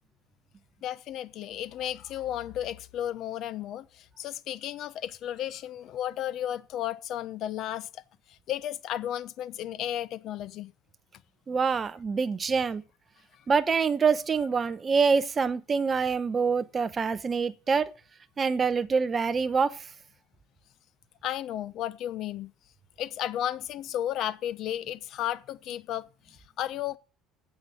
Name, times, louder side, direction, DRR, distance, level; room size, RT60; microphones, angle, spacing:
voice 1, 0.8-7.9 8.3-10.7 21.2-22.5 23.0-27.0, left 11 dB, 55° left, 0.9 m, -33 dB
voice 2, 11.5-12.8 13.5-17.9 18.4-19.8, right 5 dB, 25° right, 0.8 m, -25 dB
12.0 x 7.9 x 6.9 m
cardioid pair, 135°, 0 cm